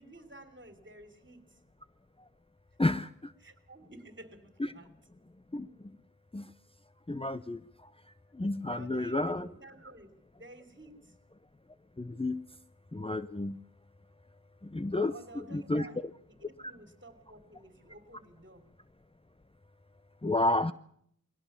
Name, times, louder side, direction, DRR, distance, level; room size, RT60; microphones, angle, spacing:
voice 1, 0.0-1.6 3.4-4.9 8.7-10.1 10.4-11.2 14.9-16.0 16.3-18.7, right 2 dB, 35° right, 10 dB, 3.5 m, -52 dB
voice 2, 2.8-3.3 5.5-5.7 6.3-6.5 7.1-7.9 8.3-9.5 12.0-12.4 12.9-13.6 14.6-15.1 15.5-15.9 20.2-20.7, left 2 dB, 15° left, 13 dB, 0.7 m, -31 dB
21.5 x 17.5 x 7.1 m, 0.67 s
wide cardioid pair, 50°, 32 cm